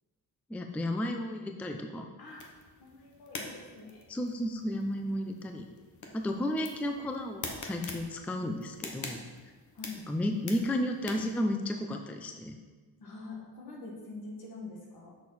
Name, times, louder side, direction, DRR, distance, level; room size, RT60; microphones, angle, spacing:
voice 1, 0.5-2.1 4.1-5.7 6.1-9.2 10.1-12.6, left 1 dB, 5° left, 4 dB, 0.4 m, -33 dB
sound 1, 2.3-11.4, left 3 dB, 50° left, 1.0 m, -46 dB
voice 2, 2.8-4.0 9.7-10.0 13.0-15.1, left 3 dB, 70° left, -2 dB, 1.9 m, -45 dB
6.6 x 6.3 x 4.1 m, 1.4 s
wide cardioid pair, 145°, 38 cm